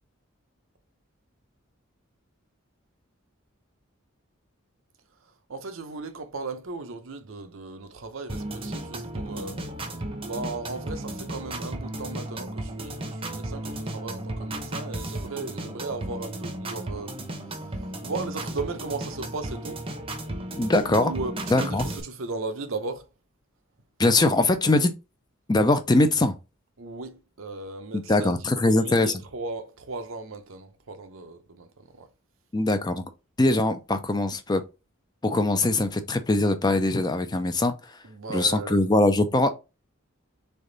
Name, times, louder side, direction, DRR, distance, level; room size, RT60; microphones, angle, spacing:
voice 1, 5.5-9.6 10.2-17.1 17.5-17.6 18.0-19.9 21.0-23.1 26.8-32.1 38.0-38.8, right 3 dB, 70° right, 0.7 m, -36 dB
sound 1, 8.3-22.0, right 1 dB, 25° right, 0.7 m, -34 dB
voice 2, 20.6-21.1 21.5-21.9 24.0-24.9 25.5-26.4 27.9-29.1 32.5-33.0 33.4-34.6 35.2-37.7 38.3-39.5, left 2 dB, 20° left, 0.4 m, -22 dB
3.7 x 3.4 x 3.9 m
head